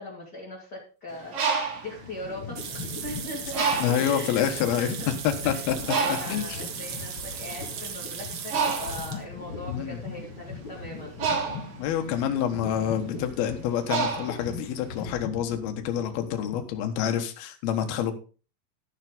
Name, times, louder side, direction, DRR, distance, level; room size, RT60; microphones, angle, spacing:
voice 1, 0.0-2.6 3.0-3.6 4.0-4.5 4.8-5.1 5.4-11.2 12.0-12.2, left 1 dB, 30° left, -4 dB, 2.5 m, -40 dB
Bird, 1.1-3.0 3.5-4.2 4.9-5.0 5.3-15.0, right 5 dB, 45° right, 2.3 m, -30 dB
sound 1, 1.6-17.1, left 5 dB, 45° left, 1.8 m, -40 dB
sound 2, 2.6-9.2, right 7 dB, 65° right, 1.6 m, -37 dB
voice 2, 3.8-4.9 5.2-5.8 6.3-6.6 9.7-10.0 11.8-18.1, left 9 dB, 70° left, 5 dB, 3.0 m, -27 dB
13.5 x 6.5 x 5.1 m, 0.36 s
omnidirectional pair, 5.0 m